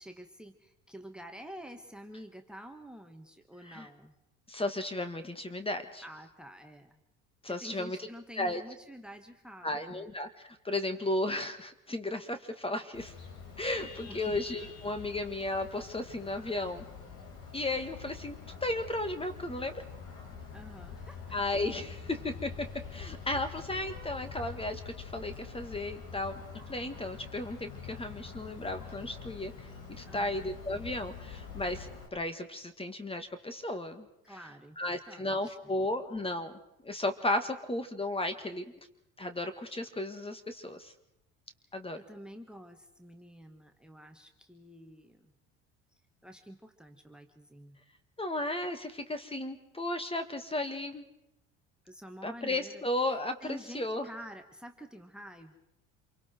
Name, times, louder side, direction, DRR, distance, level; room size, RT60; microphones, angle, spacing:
voice 1, 0.0-4.2 6.0-7.0 7.5-10.1 14.1-14.4 20.5-21.3 30.1-30.5 34.2-35.8 41.9-45.3 45.9-47.8 51.8-52.8 53.1-55.6, equal, 5° right, 7 dB, 1.8 m, -49 dB
voice 2, 4.5-6.0 7.4-8.0 8.4-8.6 9.6-13.1 13.6-16.9 17.5-19.9 21.3-26.4 26.7-29.7 30.0-34.4 34.8-36.5 36.8-38.6 39.2-40.9 41.7-42.0 48.2-51.0 52.2-54.0, left 1 dB, 15° left, 9 dB, 2.0 m, -34 dB
Vehicle horn car horn honking, 12.9-32.1, left 6 dB, 70° left, 5.8 m, -45 dB
28.0 x 23.5 x 4.6 m, 0.85 s
supercardioid pair, 80°, 32 cm